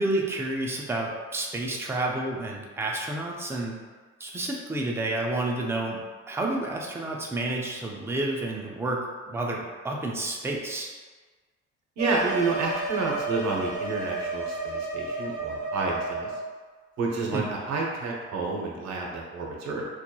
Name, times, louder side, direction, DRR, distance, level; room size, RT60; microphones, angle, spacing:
voice 1, 0.0-3.8 4.2-10.9 17.3-17.5, right 2 dB, 10° right, -1 dB, 0.3 m, -30 dB
sound 1, 12.0-16.5, right 2 dB, 40° right, 1.1 m, -32 dB
voice 2, 12.0-16.3 17.0-19.9, right 3 dB, 65° right, -2 dB, 0.7 m, -29 dB
2.8 x 2.3 x 2.2 m, 1.4 s
cardioid pair, 90°, 30 cm